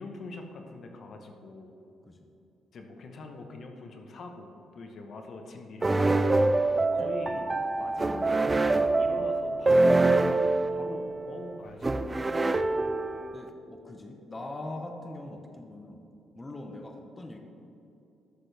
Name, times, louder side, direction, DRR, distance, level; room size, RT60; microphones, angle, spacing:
voice 1, 0.0-1.7 2.7-6.4 6.9-7.5 7.8-12.1, left 3 dB, 55° left, 4 dB, 1.0 m, -43 dB
sound 1, 5.8-13.5, right 2 dB, 20° right, 0.4 m, -25 dB
voice 2, 13.3-16.0 16.3-17.4, left 2 dB, 20° left, 3 dB, 0.8 m, -41 dB
11.5 x 6.7 x 3.4 m, 2.7 s
cardioid pair, 90°, 0 cm